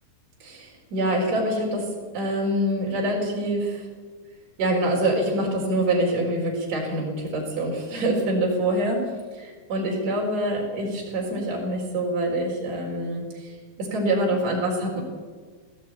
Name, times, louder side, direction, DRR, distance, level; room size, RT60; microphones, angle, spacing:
voice 1, 0.4-1.9 2.1-3.9 4.6-9.0 9.3-15.0, right 1 dB, 45° right, -2 dB, 5.4 m, -25 dB
19.5 x 16.0 x 9.2 m, 1.5 s
omnidirectional pair, 4.4 m